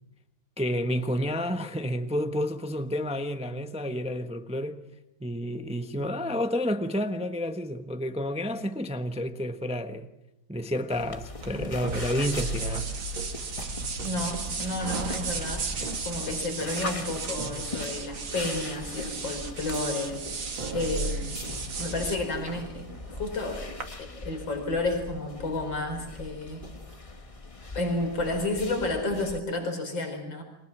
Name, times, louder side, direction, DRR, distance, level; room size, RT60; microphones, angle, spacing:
voice 1, 0.6-4.8 5.2-10.1 10.5-12.9, equal, 5° right, 0.8 m, -30 dB
sound 1, 10.9-29.4, left 3 dB, 25° left, 0.8 m, -41 dB
sound 2, 11.4-23.8, right 4 dB, 75° right, 2.9 m, -35 dB
voice 2, 14.0-15.7 16.0-20.2 20.7-21.4 21.8-23.7 24.0-26.6 27.7-30.4, left 2 dB, 70° left, 5.2 m, -31 dB
30.0 x 23.5 x 6.1 m
omnidirectional pair, 2.1 m